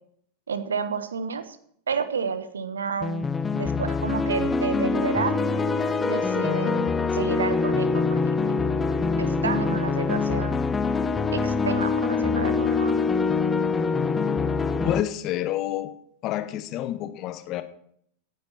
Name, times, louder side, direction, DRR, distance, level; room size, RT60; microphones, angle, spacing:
voice 1, 0.5-1.6 1.9-3.3 3.5-5.4 6.0-8.2 9.2-10.6 11.3-12.9, right 6 dB, 70° right, 12 dB, 1.2 m, -30 dB
sound 1, 3.0-15.0, left 4 dB, 15° left, 0.7 m, -24 dB
voice 2, 14.8-15.9 16.2-17.6, left 13 dB, 35° left, 10 dB, 1.4 m, -28 dB
15.5 x 10.0 x 4.4 m, 0.67 s
figure-of-eight pair, 90°, 0 cm